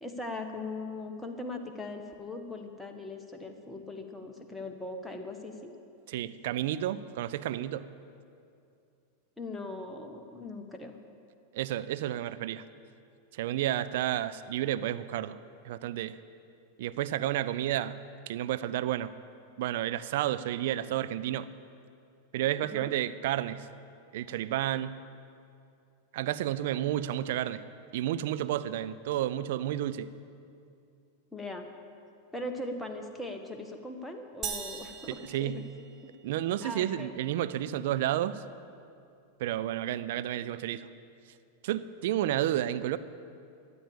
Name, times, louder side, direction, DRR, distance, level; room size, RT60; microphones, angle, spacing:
voice 1, 0.0-5.8 9.4-11.0 22.6-22.9 31.3-31.7 32.3-35.6 36.6-37.2, left 2 dB, 5° left, 3 dB, 1.3 m, -40 dB
voice 2, 6.1-7.9 11.5-12.6 13.3-15.4 15.6-16.2 16.8-18.0 18.3-19.1 19.6-21.5 22.3-23.7 24.1-24.9 26.1-27.6 27.9-30.1 35.1-35.6 36.2-38.4 39.4-40.9 41.6-43.0, right 12 dB, 55° right, 13 dB, 0.5 m, -31 dB
sound 1, 34.4-36.4, right 7 dB, 25° right, 1.2 m, -40 dB
13.5 x 8.6 x 8.7 m, 2.5 s
figure-of-eight pair, 90°, 0 cm